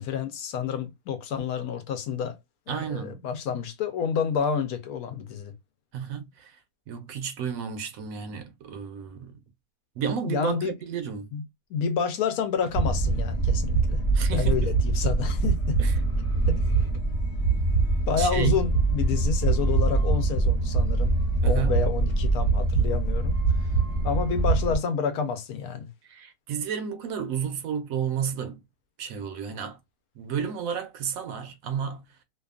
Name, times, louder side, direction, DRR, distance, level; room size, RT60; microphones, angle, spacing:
voice 1, 0.0-2.4 2.7-5.5 10.3-10.7 11.3-11.4 11.7-14.0 14.3-15.8 16.5-16.6 18.1-21.2 21.4-23.4 24.0-25.9, left 6 dB, 75° left, 1.1 m, -29 dB
voice 2, 2.7-3.2 5.9-6.6 6.9-9.4 10.0-11.3 14.1-14.7 15.8-16.0 18.1-18.6 21.4-21.8 26.0-28.6 29.0-29.8 30.2-32.1, right 7 dB, 70° right, 0.9 m, -32 dB
sound 1, 12.7-24.8, right 3 dB, 35° left, 1.0 m, -24 dB
2.7 x 2.3 x 2.3 m
omnidirectional pair, 1.6 m